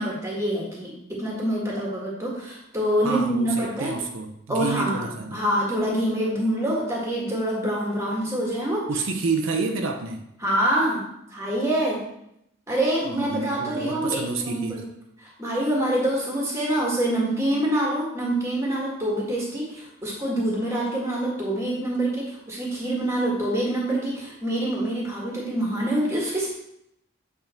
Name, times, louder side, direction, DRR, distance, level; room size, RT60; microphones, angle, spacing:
voice 1, 0.0-3.9 4.5-5.1 5.3-8.9 10.4-11.0 11.3-12.0 12.7-14.8 15.2-26.5, right 1 dB, 15° right, -4 dB, 1.7 m, -26 dB
voice 2, 3.0-5.4 8.9-10.2 13.0-14.8, right 4 dB, 75° right, 3 dB, 0.7 m, -29 dB
8.0 x 3.7 x 4.4 m, 0.78 s
head